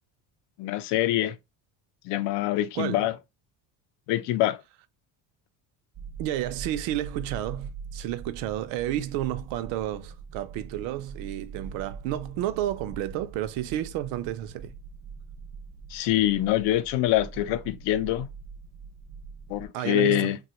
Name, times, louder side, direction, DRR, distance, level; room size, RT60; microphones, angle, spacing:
voice 1, 0.6-1.4 2.0-3.2 4.1-4.6 15.9-18.3 19.5-20.4, left 13 dB, 70° left, 0.6 m, -25 dB
voice 2, 2.8-3.1 6.2-14.7 19.7-20.3, right 13 dB, 75° right, 0.6 m, -31 dB
sound 1, 5.9-19.7, right 5 dB, 30° right, 0.5 m, -42 dB
3.0 x 2.3 x 2.8 m
cardioid pair, 145°, 44 cm